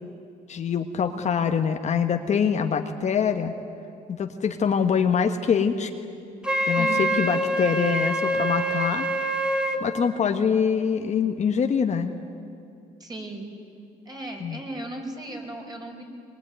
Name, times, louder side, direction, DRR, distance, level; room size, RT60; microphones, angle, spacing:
voice 1, 0.5-3.5 4.1-5.9 6.7-9.1 9.8-12.1 14.4-14.6, left 7 dB, 45° left, 5 dB, 1.4 m, -24 dB
Wind instrument woodwind instrument, 6.4-9.8, right 1 dB, 5° right, 2.2 m, -25 dB
voice 2, 6.8-7.3 13.0-13.5 14.0-16.0, right 1 dB, 25° right, 2 dB, 5.1 m, -36 dB
23.0 x 22.5 x 9.4 m, 2.5 s
cardioid pair, 110°, 17 cm